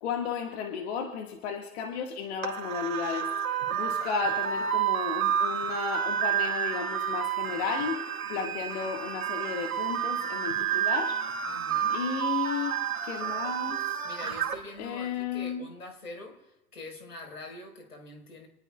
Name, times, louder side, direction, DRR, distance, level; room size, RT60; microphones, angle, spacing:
voice 1, 0.0-3.3 3.7-8.0 8.3-11.2 11.9-12.8 13.0-13.8 14.8-15.7, left 6 dB, 45° left, 2 dB, 1.8 m, -33 dB
sound 1, 2.4-14.6, right 9 dB, 65° right, 2.1 m, -30 dB
voice 2, 11.5-12.0 14.0-18.5, left 2 dB, 75° left, 2 dB, 4.4 m, -44 dB
27.0 x 20.0 x 2.3 m, 0.98 s
figure-of-eight pair, 100°, 45 cm